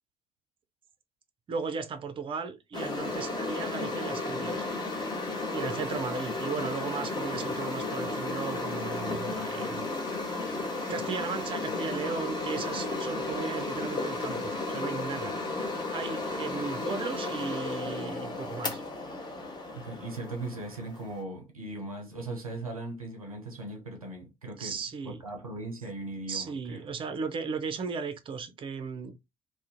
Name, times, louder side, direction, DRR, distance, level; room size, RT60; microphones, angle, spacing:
voice 1, 1.5-4.7 5.5-9.9 10.2-15.4 15.9-18.8 24.6-25.2 26.3-29.1, right 5 dB, 30° right, 0.5 m, -36 dB
sound 1, 2.7-21.2, left 2 dB, 25° left, 0.8 m, -34 dB
voice 2, 19.7-24.8 25.0-26.8, right 2 dB, 90° right, 0.5 m, -38 dB
2.4 x 2.1 x 2.6 m
figure-of-eight pair, 50°, 18 cm